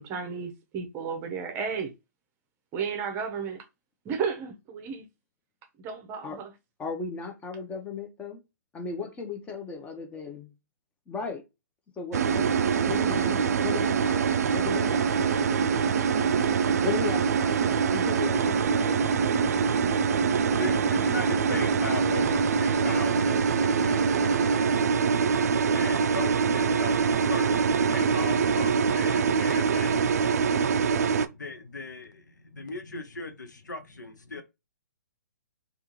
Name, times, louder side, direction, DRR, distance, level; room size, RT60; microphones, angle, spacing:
voice 1, 0.0-1.9 2.7-3.6 4.0-5.1 5.8-6.5, right 6 dB, 25° right, 0.7 m, -33 dB
voice 2, 6.8-8.4 8.7-10.5 11.1-11.4 12.0-12.5 12.8-16.2 16.8-19.2, left 5 dB, 15° left, 0.7 m, -36 dB
sound 1, 12.1-31.3, right 6 dB, 60° right, 0.4 m, -24 dB
voice 3, 18.8-34.4, left 3 dB, 85° left, 0.6 m, -39 dB
3.5 x 2.5 x 2.9 m
figure-of-eight pair, 130°, 10 cm